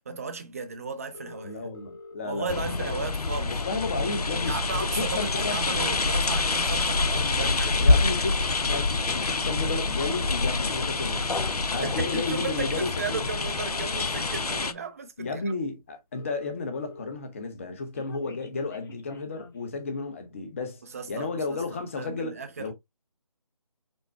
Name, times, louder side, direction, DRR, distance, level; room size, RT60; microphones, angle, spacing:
voice 1, 0.1-1.7 2.2-3.6 4.4-7.9 11.7-15.4 20.9-22.7, right 4 dB, 25° right, 0.6 m, -35 dB
sound 1, 1.1-2.2 3.3-3.4 3.7-3.8 4.0-5.4 5.9-6.1 7.0-8.1 8.8-9.1 10.0-11.1 12.4-12.5 13.0-14.1 14.8-14.9 15.2-15.3 15.5-15.6 15.8-17.1 17.5-19.6, left 3 dB, 35° left, 1.0 m, -45 dB
voice 2, 1.4-3.0 3.5-5.6 7.8-11.4 11.7-13.2 15.2-20.8 21.1-22.7, left 3 dB, 20° left, 0.7 m, -33 dB
sound 2, 2.5-14.7, left 3 dB, 90° left, 0.7 m, -26 dB
5.3 x 2.1 x 4.5 m
figure-of-eight pair, 160°, 19 cm